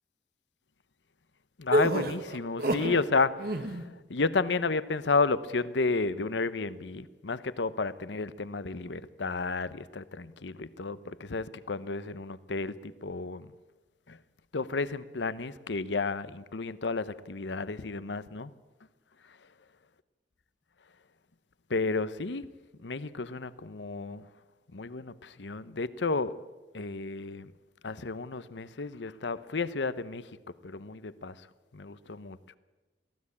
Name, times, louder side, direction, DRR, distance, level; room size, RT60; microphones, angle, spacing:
voice 1, 1.6-3.8 4.1-13.5 14.1-14.2 14.5-18.5 21.7-22.5 22.8-24.2 24.7-26.3 26.7-27.5 27.8-30.2 30.6-31.3 31.7-32.4, left 3 dB, 85° left, 16 dB, 0.9 m, -32 dB
sound 1, 1.7-3.0 3.4-3.9, right 1 dB, 60° right, 1.8 m, -28 dB
23.0 x 16.0 x 8.6 m, 1.2 s
head